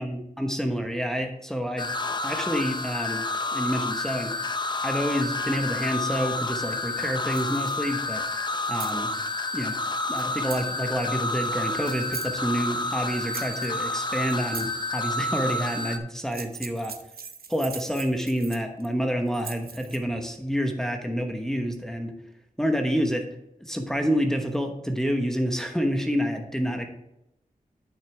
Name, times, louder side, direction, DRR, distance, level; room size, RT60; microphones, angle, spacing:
voice 1, 0.0-1.9 2.2-3.3 3.5-4.3 4.8-8.2 8.7-9.1 9.5-9.8 10.1-16.9 17.5-22.1 22.6-23.2 23.6-26.9, equal, 5° left, 3 dB, 1.0 m, -28 dB
sound 1, 1.8-16.0, left 2 dB, 30° left, 0.6 m, -29 dB
sound 2, 7.3-7.9 8.5-9.0 10.2-10.7 11.8-12.3 13.1-13.8 14.3-14.7 16.2-18.9 19.3-20.0, right 6 dB, 90° right, 0.7 m, -40 dB
8.9 x 6.6 x 3.4 m, 0.85 s
wide cardioid pair, 80°, 15 cm